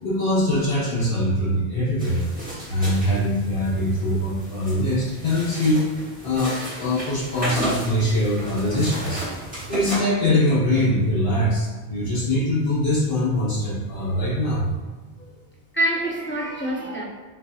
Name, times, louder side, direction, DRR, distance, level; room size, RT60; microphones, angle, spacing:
voice 1, 0.0-2.2 2.7-5.9 6.2-9.2 9.7-14.7, left 1 dB, 85° left, -7 dB, 1.8 m, -22 dB
sound 1, 2.0-10.0, right 1 dB, 10° right, 1.1 m, -33 dB
voice 2, 15.7-17.0, right 1 dB, 15° left, -4 dB, 0.4 m, -26 dB
6.4 x 2.7 x 2.3 m, 1.3 s
omnidirectional pair, 1.1 m